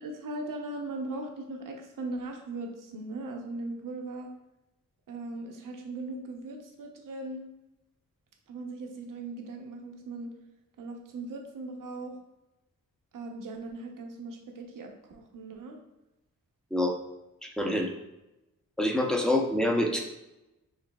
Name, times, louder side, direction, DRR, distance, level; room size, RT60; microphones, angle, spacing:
voice 1, 0.0-4.3 5.1-7.4 8.5-10.3 10.8-12.2 13.1-15.8, right 2 dB, 85° right, 3 dB, 0.8 m, -39 dB
voice 2, 17.4-17.9 18.8-20.0, left 1 dB, ahead, 1 dB, 0.6 m, -26 dB
6.6 x 3.2 x 2.3 m, 0.96 s
wide cardioid pair, 125°, 31 cm